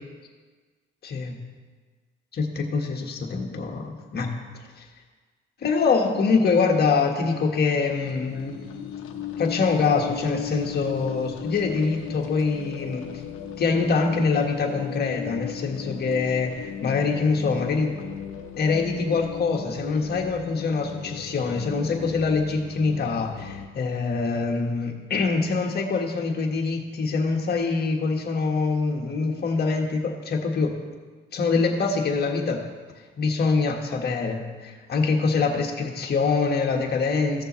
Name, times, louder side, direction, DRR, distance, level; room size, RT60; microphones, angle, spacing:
voice 1, 1.0-1.4 2.3-4.3 4.8-4.9 5.6-8.6 9.4-13.1 13.6-18.0 18.6-30.7 31.3-32.7 33.2-37.4, left 4 dB, 55° left, 1 dB, 1.5 m, -24 dB
sound 1, 7.7-23.7, left 9 dB, 90° left, 0.8 m, -36 dB
16.0 x 6.7 x 3.2 m, 1.4 s
cardioid pair, 90°, 20 cm